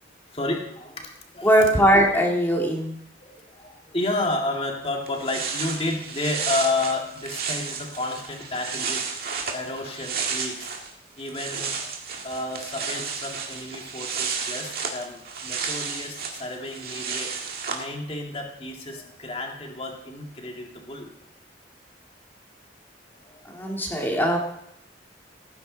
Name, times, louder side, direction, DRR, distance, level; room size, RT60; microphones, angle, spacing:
voice 1, 0.3-1.5 3.2-9.1 9.5-10.7 11.2-11.9 12.2-17.3 17.7-21.1 23.1-23.8, left 2 dB, 30° left, 1 dB, 2.1 m, -31 dB
voice 2, 1.4-3.0 23.5-24.4, equal, 10° left, 0 dB, 2.1 m, -20 dB
sound 1, 4.8-4.9 5.1-10.9 11.2-17.8, right 5 dB, 55° right, 2.1 m, -32 dB
17.5 x 9.7 x 4.0 m, 0.74 s
head